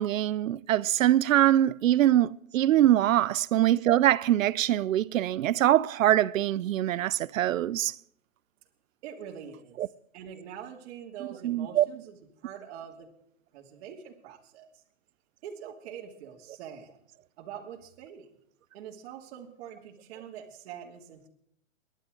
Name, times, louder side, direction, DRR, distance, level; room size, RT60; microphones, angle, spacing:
voice 1, 0.0-7.9 9.8-9.9 11.4-11.8, right 12 dB, 70° right, 0.7 m, -23 dB
voice 2, 9.0-9.8 10.1-12.2 12.4-13.1 13.5-14.7 15.4-17.0 17.4-18.3 18.7-21.3, right 8 dB, 50° right, 2.9 m, -44 dB
29.0 x 11.5 x 3.9 m
hypercardioid pair, 135°, 41 cm